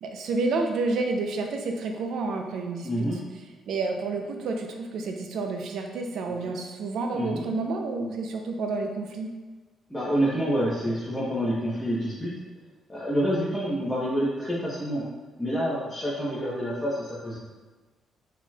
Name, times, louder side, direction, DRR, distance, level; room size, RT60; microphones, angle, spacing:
voice 1, 0.0-3.1 3.7-9.3, right 3 dB, 75° right, 4 dB, 0.5 m, -29 dB
voice 2, 2.8-3.2 6.4-6.5 7.1-7.4 9.9-12.3 12.9-15.0 15.4-17.4, equal, 10° left, -9 dB, 1.0 m, -27 dB
4.2 x 4.2 x 2.4 m, 1.3 s
cardioid pair, 90°, 0 cm